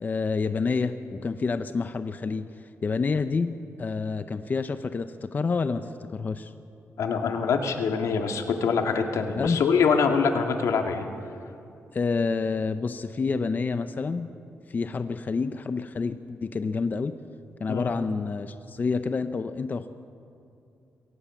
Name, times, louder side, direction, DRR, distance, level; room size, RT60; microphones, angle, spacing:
voice 1, 0.0-2.5 2.8-3.5 3.8-6.5 9.4-9.6 11.9-14.3 14.7-17.1 17.6-19.9, left 4 dB, 35° left, 10 dB, 0.7 m, -28 dB
voice 2, 7.0-11.1 17.7-18.0, left 5 dB, 85° left, 4 dB, 2.0 m, -24 dB
22.5 x 18.0 x 7.2 m, 2.6 s
cardioid pair, 120°, 5 cm